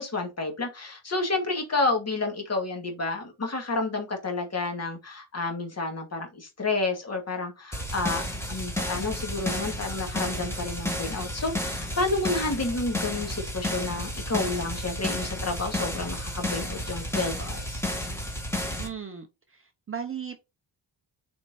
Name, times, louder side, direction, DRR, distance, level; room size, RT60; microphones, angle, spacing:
voice 1, 0.0-17.8, left 3 dB, 30° left, 2.2 m, -30 dB
sound 1, 7.7-18.9, left 1 dB, 5° left, 1.8 m, -32 dB
voice 2, 18.8-20.4, right 7 dB, 25° right, 0.7 m, -37 dB
6.6 x 4.4 x 4.2 m
wide cardioid pair, 145°, 50 cm